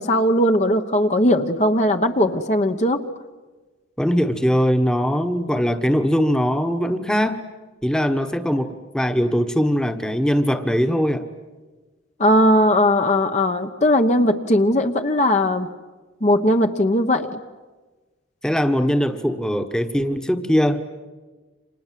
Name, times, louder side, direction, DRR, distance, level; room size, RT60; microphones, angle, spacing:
voice 1, 0.0-3.0 12.2-15.7 16.2-17.4, left 1 dB, 35° left, 6 dB, 1.1 m, -18 dB
voice 2, 4.0-7.4 7.8-11.2 18.4-20.8, equal, 5° left, 7 dB, 1.3 m, -21 dB
29.5 x 26.5 x 7.6 m, 1.3 s
head